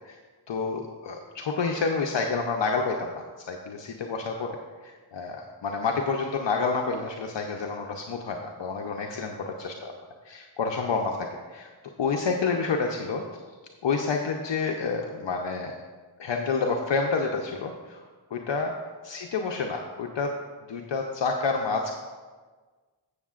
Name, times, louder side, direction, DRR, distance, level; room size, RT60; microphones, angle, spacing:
voice 1, 0.5-4.6 4.8-9.9 10.2-11.7 12.0-13.2 13.8-15.7 16.2-18.0 18.3-18.7 19.0-20.4 20.7-21.9, left 4 dB, 60° left, 2 dB, 0.7 m, -29 dB
14.0 x 6.5 x 2.5 m, 1.4 s
cardioid pair, 55°, 49 cm